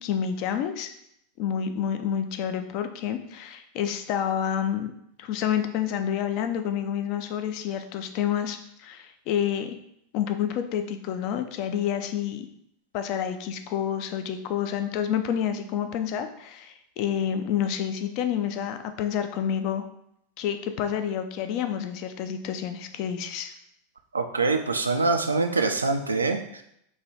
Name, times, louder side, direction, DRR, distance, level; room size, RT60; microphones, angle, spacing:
voice 1, 0.0-0.9 1.4-4.9 5.2-9.8 10.1-12.5 12.9-19.9 20.4-23.5, left 9 dB, 50° left, 8 dB, 0.4 m, -29 dB
voice 2, 24.1-26.6, right 3 dB, 80° right, 6 dB, 0.3 m, -24 dB
3.1 x 2.3 x 4.0 m, 0.75 s
figure-of-eight pair, 85°, 0 cm